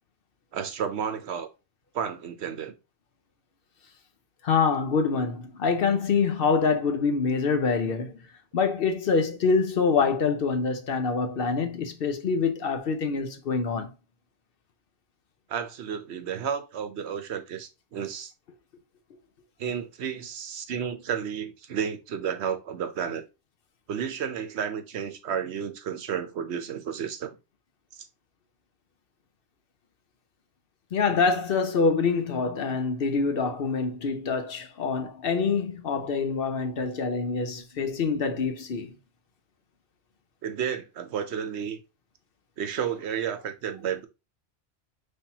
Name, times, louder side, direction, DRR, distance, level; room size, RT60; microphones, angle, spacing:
voice 1, 0.5-1.5 1.9-2.8 15.5-18.3 19.6-23.2 23.9-27.4 27.9-28.0 40.4-41.8 42.6-44.1, right 8 dB, 75° right, 1.0 m, -32 dB
voice 2, 4.4-8.2 8.5-13.9 30.9-39.0, left 5 dB, 60° left, 0.8 m, -25 dB
5.5 x 3.4 x 2.8 m
omnidirectional pair, 1.2 m